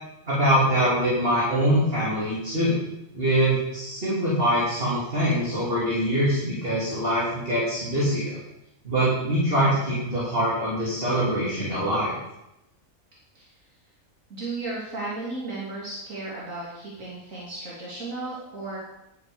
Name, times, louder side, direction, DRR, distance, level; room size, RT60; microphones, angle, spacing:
voice 1, 0.3-2.8 3.1-8.4 8.9-12.2, equal, 45° right, -8 dB, 3.6 m, -23 dB
voice 2, 14.3-18.8, right 2 dB, 70° right, -6 dB, 3.2 m, -34 dB
11.5 x 7.9 x 7.0 m, 0.88 s
omnidirectional pair, 1.4 m